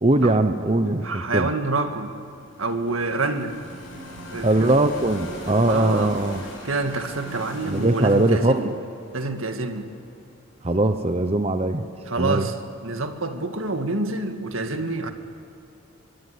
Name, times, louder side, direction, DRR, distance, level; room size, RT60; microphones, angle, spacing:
voice 1, 0.0-1.5 4.4-6.4 7.7-8.8 10.6-11.8 12.2-12.5, right 2 dB, 30° right, 8 dB, 0.9 m, -21 dB
voice 2, 1.0-2.1 2.6-3.6 4.3-4.7 5.7-6.2 6.6-8.7 9.1-9.9 12.1-12.6 12.8-15.1, right 3 dB, 80° right, 6 dB, 2.0 m, -27 dB
sound 1, 2.2-10.2, left 1 dB, 60° left, 7.5 m, -40 dB
24.0 x 23.5 x 8.4 m, 2.7 s
head